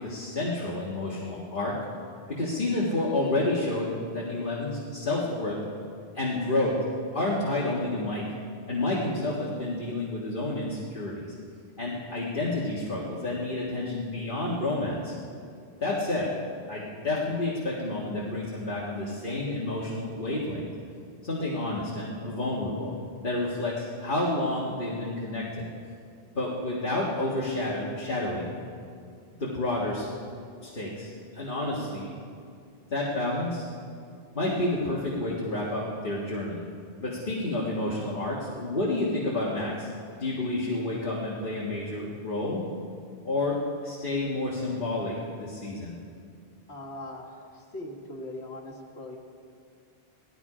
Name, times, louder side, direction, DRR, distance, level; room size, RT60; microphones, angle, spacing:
voice 1, 0.0-1.8 2.3-5.6 6.1-6.8 7.1-8.3 8.7-11.3 11.8-15.1 15.8-16.3 16.7-20.7 21.2-22.9 23.2-25.6 26.4-28.5 29.4-30.1 30.6-32.2 32.9-33.6 34.3-36.6 37.0-39.9 40.2-42.6 43.3-43.6 43.8-46.0, left 2 dB, 50° left, -6 dB, 1.9 m, -30 dB
voice 2, 46.7-49.2, left 1 dB, 85° left, 1 dB, 1.8 m, -40 dB
17.0 x 13.0 x 4.9 m, 2.3 s
omnidirectional pair, 1.1 m